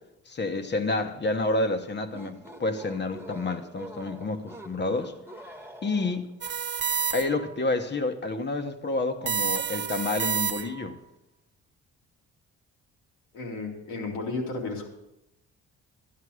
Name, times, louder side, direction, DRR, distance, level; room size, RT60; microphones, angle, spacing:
voice 1, 0.3-5.1 5.8-6.3 7.1-11.0, left 2 dB, 35° left, 1.1 m, -29 dB
sound 1, 1.9-6.4, right 1 dB, 10° right, 1.0 m, -45 dB
sound 2, 6.4-7.5 9.3-10.9, right 7 dB, 40° right, 0.6 m, -29 dB
voice 2, 13.3-14.9, left 3 dB, 90° left, 2.6 m, -33 dB
12.0 x 9.6 x 4.9 m
cardioid pair, 90°, 30 cm